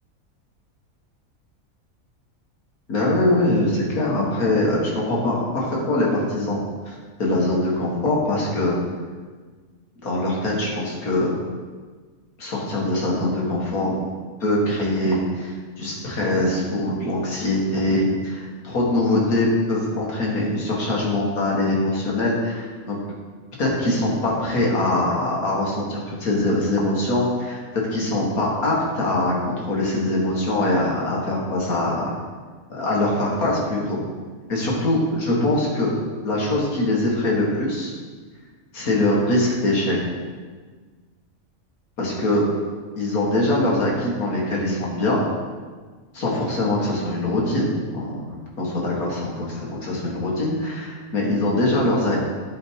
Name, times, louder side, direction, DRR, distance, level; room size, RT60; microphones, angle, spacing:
voice 1, 2.9-6.6 6.9-7.0 7.2-8.8 10.0-11.3 12.4-13.9 14.4-23.0 23.6-32.1 32.7-34.0 34.5-35.9 36.2-37.9 38.7-40.0 42.0-42.4 43.0-45.2 46.1-52.2, left 1 dB, 85° left, -4 dB, 2.4 m, -23 dB
10.5 x 5.2 x 4.7 m, 1.4 s
omnidirectional pair, 1.5 m